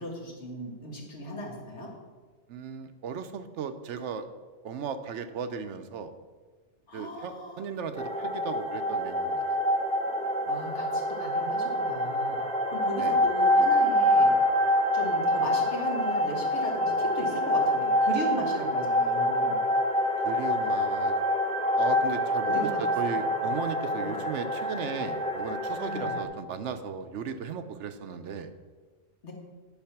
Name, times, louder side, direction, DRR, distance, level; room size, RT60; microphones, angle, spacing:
voice 1, 0.0-1.9 6.9-7.6 10.5-14.3 14.9-19.6 22.5-22.8 23.0-23.2 24.0-24.1 25.8-26.2 29.2-29.3, equal, 70° left, -1 dB, 2.1 m, -37 dB
voice 2, 2.5-4.3 4.6-6.1 6.9-9.6 13.0-13.2 16.9-17.4 20.2-21.1 21.8-28.5, right 6 dB, 75° right, 9 dB, 1.0 m, -36 dB
sound 1, 8.0-26.2, left 1 dB, 10° left, 0.4 m, -26 dB
10.5 x 5.0 x 5.8 m, 1.4 s
omnidirectional pair, 1.2 m